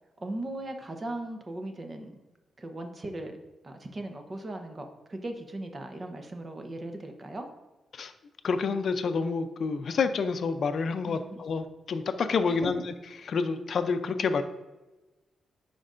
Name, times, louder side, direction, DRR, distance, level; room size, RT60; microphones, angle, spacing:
voice 1, 0.2-2.1 2.6-3.4 3.6-7.5 11.0-11.4 12.5-12.8, right 1 dB, 30° right, 5 dB, 0.8 m, -38 dB
voice 2, 8.4-12.8 13.3-14.4, left 5 dB, 55° left, 9 dB, 0.5 m, -28 dB
9.7 x 5.2 x 2.5 m, 1.1 s
cardioid pair, 110°, 0 cm